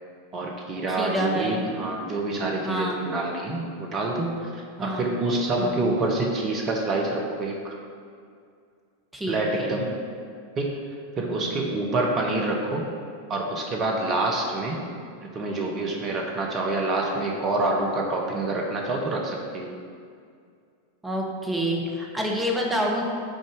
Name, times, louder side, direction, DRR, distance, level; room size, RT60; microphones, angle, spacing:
voice 1, 0.3-7.7 9.3-9.9 10.6-10.7 11.2-12.8 13.3-14.8 15.3-19.7, right 2 dB, 30° right, 0 dB, 0.9 m, -27 dB
voice 2, 0.9-1.7 2.6-3.1 4.8-5.1 5.6-5.9 9.1-9.8 11.3-11.6 21.0-23.0, equal, 10° right, -1 dB, 1.2 m, -28 dB
6.4 x 4.3 x 6.5 m, 2.2 s
figure-of-eight pair, 90°, 0 cm